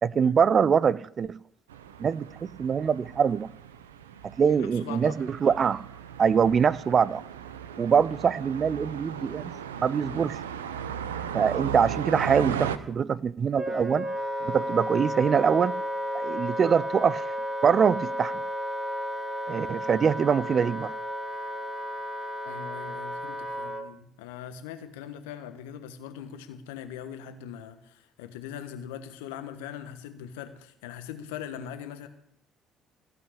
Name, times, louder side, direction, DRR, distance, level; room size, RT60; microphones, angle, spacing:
voice 1, 0.0-1.3 2.0-2.3 2.6-3.5 4.4-5.8 6.2-7.2 7.8-9.5 9.8-10.4 11.3-14.1 14.4-15.8 16.1-17.2 17.6-18.3 19.5-20.9, right 7 dB, 45° right, 0.5 m, -23 dB
sound 1, 1.7-12.8, right 8 dB, 90° right, 0.7 m, -37 dB
voice 2, 4.5-5.2 22.4-32.1, left 9 dB, 80° left, 1.3 m, -41 dB
Wind instrument woodwind instrument, 13.6-23.9, equal, 20° right, 1.9 m, -33 dB
16.0 x 5.8 x 10.0 m
hypercardioid pair, 55°, 0 cm